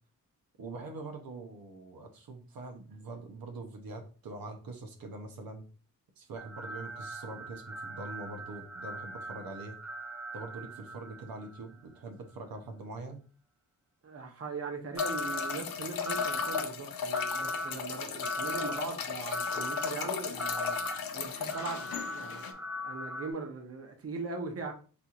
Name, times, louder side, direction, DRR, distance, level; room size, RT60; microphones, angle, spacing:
voice 1, 0.6-5.6 6.2-9.8 10.3-13.2, right 2 dB, 90° right, 0.7 m, -43 dB
sound 1, 6.4-11.7 15.0-15.5 16.0-16.6 17.1-17.7 18.2-18.8 19.3-19.9 20.4-20.9 21.5-23.3, left 1 dB, 5° right, 0.6 m, -38 dB
voice 2, 14.0-20.8 21.1-24.7, right 4 dB, 45° right, 0.8 m, -40 dB
sound 2, 14.9-22.5, left 7 dB, 90° left, 0.5 m, -36 dB
4.2 x 2.9 x 2.4 m
cardioid pair, 75°, 34 cm